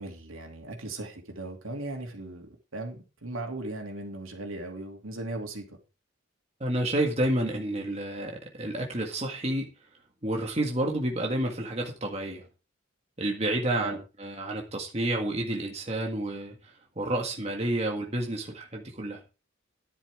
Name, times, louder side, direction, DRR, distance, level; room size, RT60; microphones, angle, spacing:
voice 1, 0.0-5.8 13.8-14.0, right 2 dB, 80° right, 3 dB, 2.9 m, -38 dB
voice 2, 6.6-9.7 10.2-12.5 13.2-19.2, right 1 dB, 30° right, 1 dB, 1.8 m, -30 dB
12.0 x 10.5 x 3.7 m, 0.32 s
head